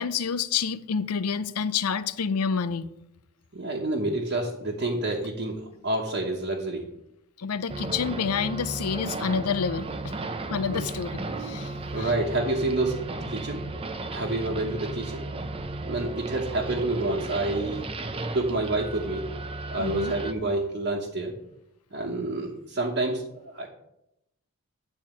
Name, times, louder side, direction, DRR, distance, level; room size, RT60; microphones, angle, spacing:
voice 1, 0.0-2.9 7.4-10.1 10.5-12.1 19.8-20.1, left 6 dB, 90° left, 0.6 m, -28 dB
voice 2, 3.5-6.9 10.7-10.8 11.9-13.0 13.3-13.7 14.1-15.3 15.8-17.9 18.3-19.2 19.7-21.3 21.9-23.7, right 2 dB, 50° right, 1.2 m, -28 dB
sound 1, 7.7-20.3, right 2 dB, 25° right, 0.6 m, -35 dB
9.8 x 4.4 x 7.4 m
head